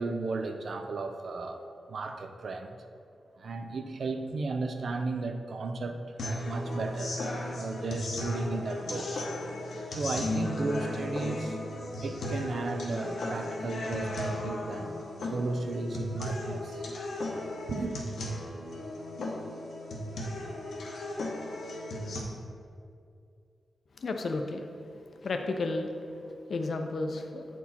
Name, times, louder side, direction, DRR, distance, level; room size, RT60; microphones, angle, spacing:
voice 1, 0.0-1.6 1.9-2.8 3.4-6.0 6.4-7.2 7.5-9.3 10.0-11.6 12.0-16.8 17.7-18.0, right 3 dB, 60° right, 6 dB, 0.5 m, -34 dB
sound 1, 6.2-22.2, left 1 dB, 85° left, 1.0 m, -35 dB
voice 2, 24.0-25.9 26.5-27.5, left 3 dB, 55° left, 5 dB, 0.5 m, -33 dB
8.3 x 4.5 x 4.2 m, 2.4 s
wide cardioid pair, 160°, 0 cm